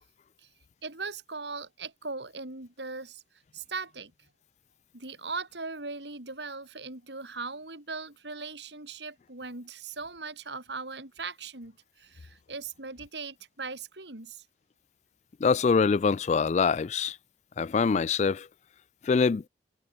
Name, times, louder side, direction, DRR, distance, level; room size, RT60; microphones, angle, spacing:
voice 1, 0.8-3.2 3.5-4.1 4.9-14.4, right 4 dB, 75° right, 4.2 m, -39 dB
voice 2, 15.4-17.2 17.6-18.5 19.0-19.4, left 5 dB, 40° left, 0.3 m, -24 dB
head